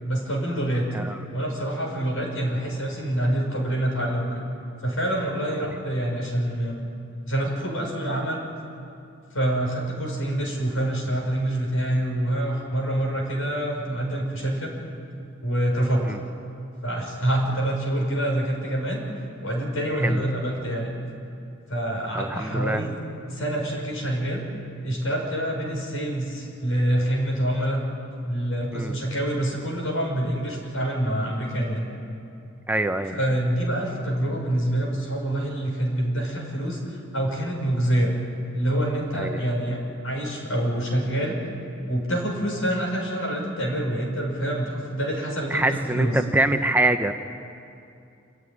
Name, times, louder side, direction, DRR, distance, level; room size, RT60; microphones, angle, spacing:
voice 1, 0.0-0.9 1.3-4.4 4.8-6.8 7.2-8.4 9.3-14.7 15.4-16.1 16.8-19.0 19.4-20.9 21.7-23.0 23.3-24.4 24.8-27.8 28.2-31.8 33.1-38.1 38.5-41.4 41.9-46.2, right 1 dB, 85° left, -1 dB, 6.2 m, -26 dB
voice 2, 22.1-22.8 28.7-29.0 32.7-33.1 39.2-39.4 45.5-47.1, right 2 dB, 10° right, 7 dB, 0.7 m, -24 dB
27.5 x 14.5 x 9.9 m, 2.6 s
head